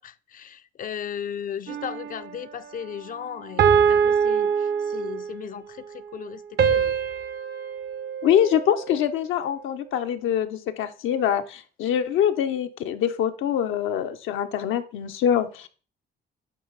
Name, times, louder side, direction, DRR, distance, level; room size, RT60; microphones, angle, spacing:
voice 1, 0.0-6.9, left 8 dB, 45° left, 0.4 m, -36 dB
sound 1, 1.7-2.4 3.6-5.4 6.6-9.0, right 7 dB, 55° right, 0.6 m, -23 dB
voice 2, 8.2-15.7, left 9 dB, 85° left, 0.6 m, -24 dB
8.4 x 3.5 x 3.9 m
cardioid pair, 90°, 20 cm